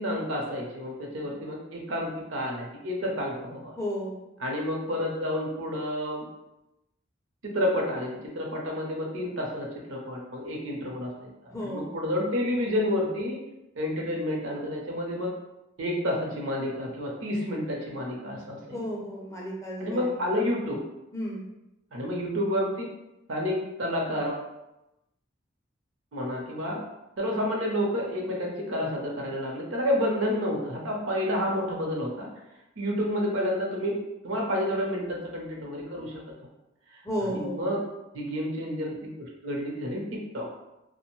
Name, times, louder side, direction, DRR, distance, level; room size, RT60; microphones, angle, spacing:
voice 1, 0.0-3.8 4.4-6.3 7.4-13.4 13.8-15.3 15.8-18.8 19.8-20.8 21.9-22.8 23.3-24.5 26.1-26.8 27.2-32.3 32.8-34.0 34.2-36.1 37.2-37.8 38.1-40.5, left 1 dB, 80° right, -1 dB, 0.7 m, -30 dB
voice 2, 3.8-4.2 11.5-11.9 18.7-20.1 21.1-21.4 37.0-37.6, equal, 15° left, -3 dB, 0.4 m, -33 dB
2.5 x 2.1 x 3.0 m, 0.93 s
head